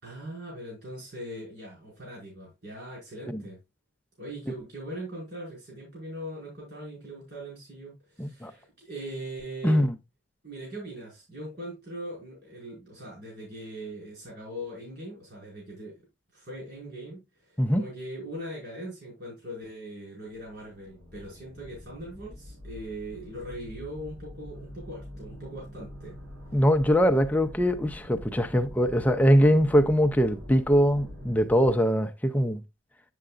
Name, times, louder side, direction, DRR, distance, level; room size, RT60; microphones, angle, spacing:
voice 1, 0.0-3.6 4.2-9.9 10.4-16.0 16.3-26.2 26.5-26.6, right 1 dB, 50° right, 4.9 m, -40 dB
voice 2, 8.2-8.5 9.6-9.9 17.6-17.8 26.5-32.6, equal, 10° left, 0.5 m, -22 dB
sound 1, 20.3-31.7, left 1 dB, 85° right, 3.0 m, -45 dB
7.9 x 7.6 x 2.4 m
head